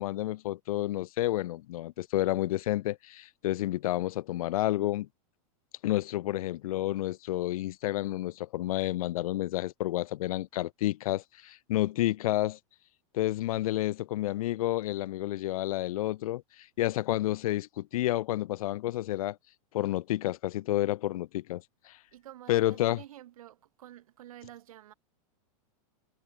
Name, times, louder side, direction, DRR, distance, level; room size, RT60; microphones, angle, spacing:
voice 1, 0.0-5.1 5.8-12.6 13.1-19.4 19.7-22.0 22.5-23.0, left 15 dB, 75° left, 0.5 m, -30 dB
voice 2, 22.1-24.9, right 13 dB, 75° right, 3.0 m, -49 dB
supercardioid pair, 170°, 18 cm